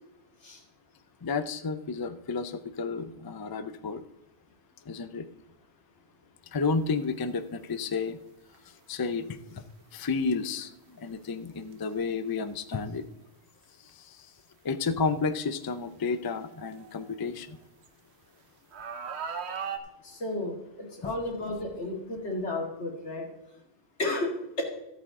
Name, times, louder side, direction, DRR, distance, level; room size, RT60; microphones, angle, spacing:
voice 1, 1.2-4.0 4.9-5.3 6.5-8.2 8.9-9.6 9.9-13.0 14.0-14.2 14.6-17.6 21.0-21.1, left 4 dB, 30° left, 11 dB, 0.4 m, -31 dB
sound 1, 6.9-7.1 8.5-8.6 11.6-11.8 12.8-12.9 13.9-14.0 14.7-14.8 16.1-17.9 18.7-19.8, right 6 dB, 75° right, 1.2 m, -38 dB
voice 2, 20.0-23.3 24.0-24.6, left 2 dB, 90° left, 0 dB, 2.5 m, -33 dB
14.0 x 8.5 x 3.7 m, 0.89 s
omnidirectional pair, 1.1 m